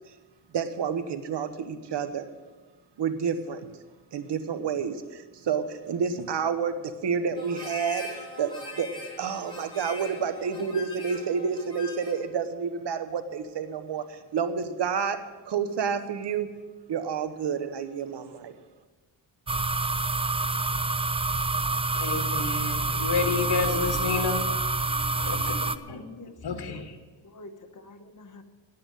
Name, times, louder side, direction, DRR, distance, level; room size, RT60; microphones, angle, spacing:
voice 1, 0.5-2.3 3.0-3.6 4.1-8.5 8.8-8.9 9.2-15.2 15.5-16.5 16.9-18.5, right 6 dB, 70° right, 1.1 m, -29 dB
Harmonica, 7.3-12.3, left 3 dB, 10° left, 5.3 m, -41 dB
sound 1, 19.5-25.8, right 3 dB, 15° right, 0.4 m, -27 dB
voice 2, 21.9-24.4 25.1-25.5 25.9-26.0 26.4-26.9, left 5 dB, 60° left, 1.7 m, -29 dB
voice 3, 26.0-26.8 27.3-28.4, left 2 dB, 45° left, 1.3 m, -47 dB
9.8 x 8.6 x 9.0 m
cardioid pair, 85°, 44 cm